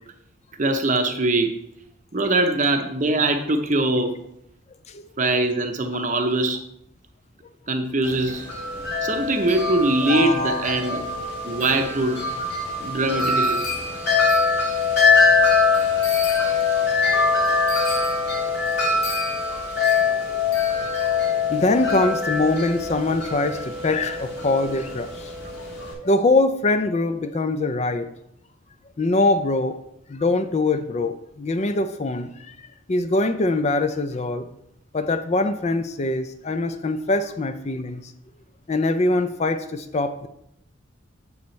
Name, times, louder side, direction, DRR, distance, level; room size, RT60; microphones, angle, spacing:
voice 1, 0.6-1.6 2.1-4.1 5.2-6.6 7.7-8.5 9.0-11.1 11.4-12.2 12.8-13.6, right 2 dB, 40° right, 6 dB, 0.7 m, -22 dB
Wind chime, 8.0-25.9, left 4 dB, 55° left, 2.3 m, -23 dB
voice 2, 10.0-10.9 14.1-14.3 16.4-17.6 19.5-19.7 20.3-20.4 20.8-28.1 29.0-29.8 30.1-32.6 32.9-34.4 34.9-38.1 38.7-40.3, left 2 dB, 35° left, 9 dB, 0.4 m, -24 dB
8.1 x 7.0 x 3.2 m, 0.78 s
head